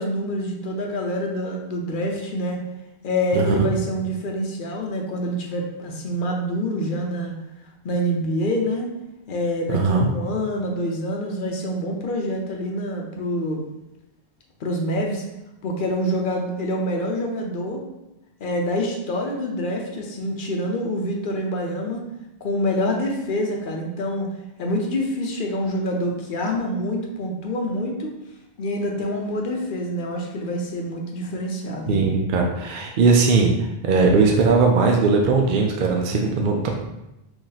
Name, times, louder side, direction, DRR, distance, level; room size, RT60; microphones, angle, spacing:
voice 1, 0.0-2.6 3.0-7.3 7.8-8.9 9.3-13.6 14.6-15.2 15.6-17.8 18.4-22.1 22.4-24.3 24.6-28.1 28.6-32.0, equal, 60° left, 1 dB, 0.7 m, -26 dB
voice 2, 3.3-3.7 9.7-10.1 31.9-33.5 33.8-36.7, right 4 dB, 60° right, 1 dB, 0.6 m, -19 dB
3.0 x 2.7 x 3.9 m, 0.90 s
omnidirectional pair, 1.0 m